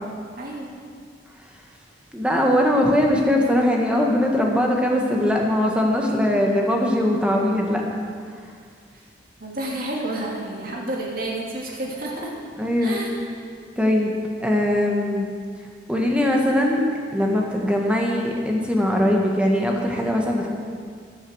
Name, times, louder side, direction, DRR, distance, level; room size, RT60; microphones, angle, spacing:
voice 1, 0.4-0.7 8.9-9.1 9.4-12.3 12.8-13.2, right 1 dB, 50° right, -2 dB, 2.5 m, -30 dB
voice 2, 2.1-7.8 12.6-13.0 13.8-15.3 15.9-16.8 17.1-20.5, left 1 dB, 5° right, -1 dB, 1.6 m, -21 dB
14.5 x 10.5 x 6.3 m, 2.1 s
head